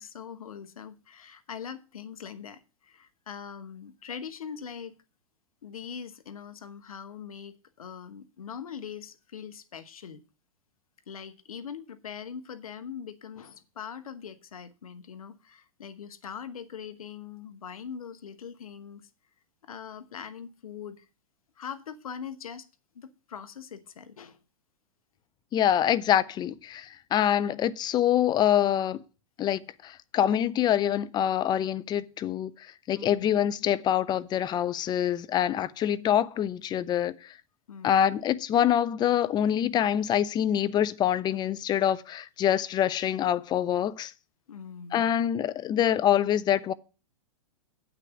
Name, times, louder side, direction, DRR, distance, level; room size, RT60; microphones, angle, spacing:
voice 1, 0.0-4.9 5.6-10.2 11.1-19.0 19.6-21.1 21.6-22.7 22.9-24.4 32.9-33.3 37.7-38.2 44.5-45.1, left 7 dB, 75° left, 1.1 m, -42 dB
voice 2, 25.5-29.0 29.4-37.3 37.8-44.1 44.9-46.7, left 10 dB, 25° left, 0.5 m, -25 dB
8.3 x 6.1 x 7.0 m
hypercardioid pair, 105°, 18 cm